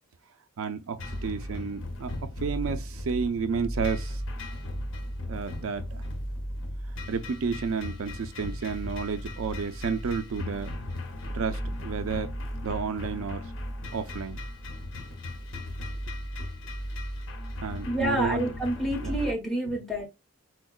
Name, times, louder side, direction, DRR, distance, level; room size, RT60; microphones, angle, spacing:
voice 1, 0.6-2.1 2.4-4.2 5.3-6.0 7.1-10.7 11.3-12.3 12.6-13.5 13.9-14.4 17.6-18.5 19.0-19.2 19.6-19.7, right 5 dB, 90° right, 0.4 m, -31 dB
sound 1, 1.0-19.3, left 1 dB, 65° left, 0.6 m, -36 dB
voice 2, 17.9-20.0, right 1 dB, ahead, 0.9 m, -28 dB
4.5 x 2.1 x 2.2 m
head